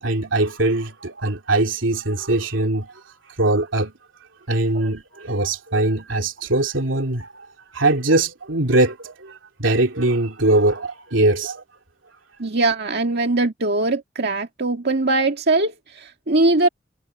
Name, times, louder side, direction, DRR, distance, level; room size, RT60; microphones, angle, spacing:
voice 1, 0.0-3.0 3.4-3.9 4.5-7.5 7.7-11.6, right 2 dB, 85° right, 2.8 m, -21 dB
voice 2, 12.4-16.7, right 2 dB, 60° right, 2.1 m, -21 dB
head